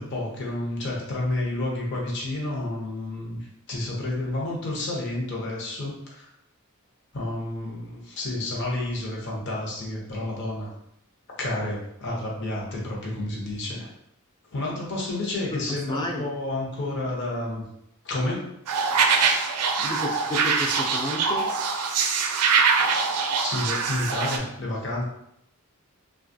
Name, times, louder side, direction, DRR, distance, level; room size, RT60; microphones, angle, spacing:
voice 1, 0.0-3.4 3.7-6.3 7.1-10.7 11.4-13.9 14.5-17.6 18.0-18.4 19.0-19.2 23.4-25.0, left 2 dB, 50° left, -3 dB, 0.8 m, -30 dB
voice 2, 15.9-16.3 19.8-21.5, left 1 dB, 20° left, 0 dB, 0.3 m, -31 dB
sound 1, 18.7-24.4, right 5 dB, 85° right, 0.4 m, -23 dB
2.9 x 2.3 x 2.6 m, 0.77 s
head